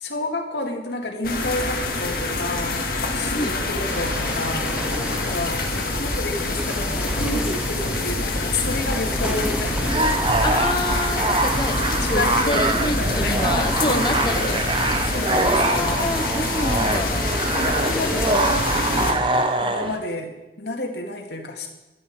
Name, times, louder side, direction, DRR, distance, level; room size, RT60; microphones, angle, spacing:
voice 1, 0.0-4.8 5.1-10.0 12.0-14.6 15.1-16.0 17.5-21.7, left 2 dB, 70° left, 2 dB, 2.1 m, -30 dB
sound 1, 1.2-19.1, left 2 dB, 55° left, 2.0 m, -26 dB
voice 2, 3.1-3.6 10.4-14.4 14.7-15.0 15.5-17.3, left 2 dB, 25° left, 5 dB, 0.8 m, -28 dB
sound 2, 3.8-19.1, right 1 dB, 5° right, 0.7 m, -34 dB
sound 3, 9.8-20.0, right 2 dB, 30° right, 1.0 m, -24 dB
15.0 x 12.0 x 4.8 m, 1.0 s
head